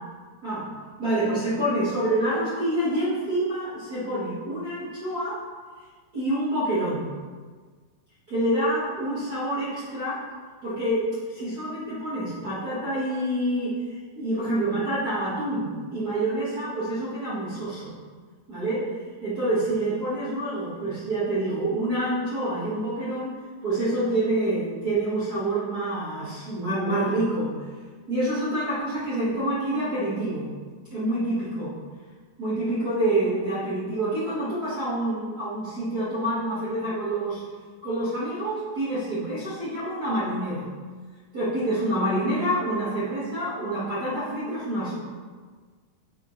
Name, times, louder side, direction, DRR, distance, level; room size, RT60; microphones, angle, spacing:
voice 1, 1.0-5.4 6.1-7.0 8.3-10.2 10.6-13.7 14.1-17.9 18.5-18.9 19.2-23.3 23.6-27.5 28.1-30.5 30.9-31.7 32.4-37.4 37.8-40.6 41.3-45.0, right 1 dB, 70° right, -12 dB, 0.9 m, -27 dB
8.4 x 4.5 x 3.2 m, 1.5 s
omnidirectional pair, 4.3 m